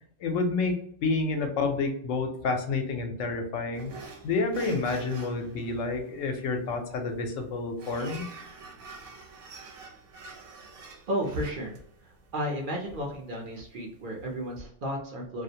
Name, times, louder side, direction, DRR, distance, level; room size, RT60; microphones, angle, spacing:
voice 1, 0.2-0.8 1.0-3.9 4.2-8.2, left 3 dB, 80° left, 4 dB, 0.9 m, -29 dB
sound 1, 3.7-14.6, right 4 dB, 75° right, 0.9 m, -48 dB
voice 2, 11.1-11.7 12.3-15.4, equal, 55° right, -1 dB, 0.6 m, -33 dB
2.4 x 2.1 x 2.6 m, 0.65 s
omnidirectional pair, 1.3 m